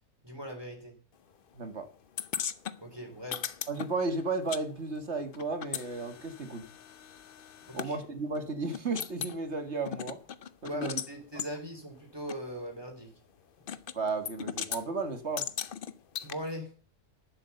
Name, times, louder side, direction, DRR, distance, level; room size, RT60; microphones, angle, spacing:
voice 1, 0.2-1.0 2.8-3.5 7.7-8.0 10.6-13.2 16.2-16.8, equal, 15° right, 3.3 m, -40 dB
voice 2, 1.5-1.9 3.7-6.7 7.7-10.2 10.6-11.0 13.9-15.5, right 3 dB, 45° right, 1.8 m, -34 dB
sound 1, 2.2-4.6 4.9-7.9 8.4-8.5 8.7-9.4 9.9-11.1 11.4-11.5 12.3-12.4 13.7-14.0 14.3-14.8 15.4-16.3, left 8 dB, 55° left, 0.6 m, -38 dB
11.0 x 7.6 x 6.8 m
omnidirectional pair, 1.7 m